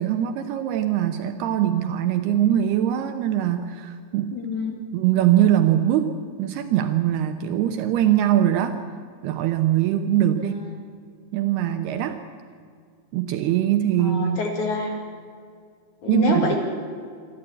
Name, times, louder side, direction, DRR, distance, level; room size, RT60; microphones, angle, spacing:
voice 1, 0.0-4.3 4.9-8.8 9.2-10.5 11.3-12.2 13.1-14.4 16.1-16.6, right 11 dB, 75° right, 7 dB, 2.6 m, -22 dB
voice 2, 4.3-4.8 10.3-10.7 14.0-14.9 16.0-16.6, left 2 dB, 50° left, 2 dB, 3.1 m, -26 dB
25.0 x 13.5 x 8.8 m, 2.2 s
omnidirectional pair, 5.2 m